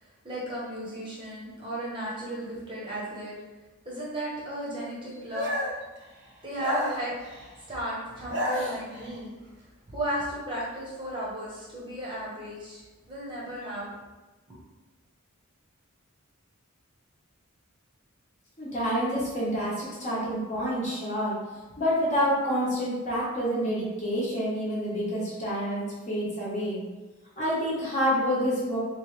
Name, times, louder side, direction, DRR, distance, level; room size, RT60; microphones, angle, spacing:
voice 1, 0.0-3.3 3.8-5.5 6.4-7.1 7.7-9.3 9.9-13.9, right 1 dB, 25° right, -6 dB, 0.9 m, -35 dB
sound 1, 5.3-5.9 6.6-7.5 8.1-9.2, equal, 55° right, 0.6 m, -31 dB
voice 2, 18.6-21.4 21.8-26.8 27.4-28.8, equal, 35° left, -7 dB, 1.2 m, -28 dB
3.2 x 3.2 x 3.3 m, 1.2 s
head